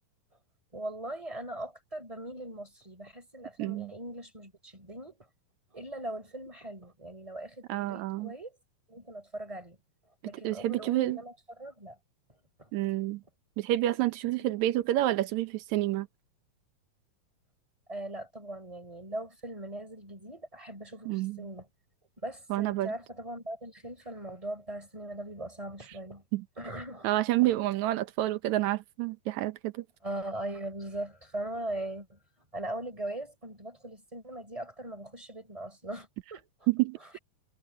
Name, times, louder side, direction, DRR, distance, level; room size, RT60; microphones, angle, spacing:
voice 1, 0.7-5.3 5.7-8.6 8.9-9.8 10.2-12.0 12.6-12.7 14.3-14.5 14.7-14.8 17.9-21.7 22.2-26.2 26.6-27.1 27.4-27.5 30.0-32.2 32.5-36.7, right 1 dB, 10° right, 4.2 m, -40 dB
voice 2, 3.6-3.9 7.7-8.3 10.4-11.2 12.7-13.2 13.6-16.1 21.1-21.5 22.5-22.9 26.3-26.4 27.0-29.8 36.7-37.0, right 15 dB, 75° right, 1.7 m, -28 dB
omnidirectional pair, 4.1 m